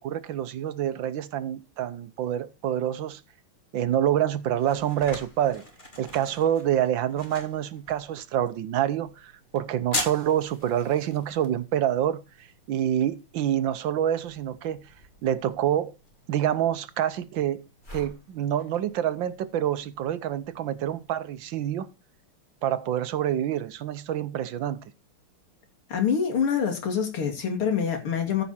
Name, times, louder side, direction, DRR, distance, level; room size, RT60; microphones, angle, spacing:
voice 1, 0.0-3.2 3.7-5.6 6.0-14.8 15.2-16.0 16.3-17.6 17.9-21.9 22.6-24.8, right 11 dB, 70° right, 1.4 m, -27 dB
sound 1, 3.9-21.5, left 2 dB, 20° left, 2.6 m, -43 dB
voice 2, 25.9-28.4, left 7 dB, 90° left, 3.2 m, -25 dB
14.5 x 6.0 x 4.3 m
omnidirectional pair, 2.3 m